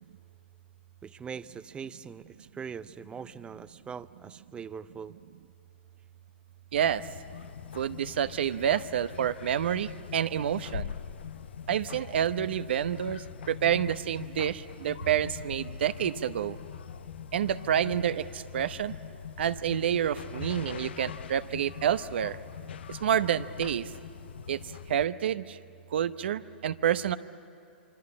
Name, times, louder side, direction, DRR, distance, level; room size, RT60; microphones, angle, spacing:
voice 1, 1.0-5.1, right 6 dB, 15° right, 14 dB, 0.6 m, -42 dB
sound 1, 6.7-25.1, left 8 dB, 75° left, 0.7 m, -42 dB
voice 2, 6.7-7.0 7.7-10.9 11.7-16.6 17.3-18.9 19.4-22.4 22.9-23.9 24.5-24.6 24.9-25.6 25.9-27.1, right 9 dB, 70° right, 12 dB, 0.8 m, -28 dB
25.0 x 25.0 x 8.6 m, 2.7 s
hypercardioid pair, 115°, 6 cm